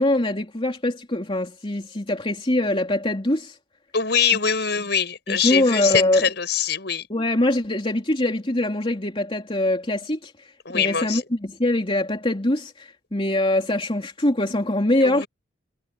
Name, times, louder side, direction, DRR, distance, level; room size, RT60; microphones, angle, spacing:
voice 1, 0.0-3.6 5.3-6.2 7.1-15.2, left 1 dB, 30° left, 3.1 m, -23 dB
voice 2, 3.9-7.1 10.7-11.2 15.0-15.3, left 7 dB, 60° left, 6.8 m, -23 dB
head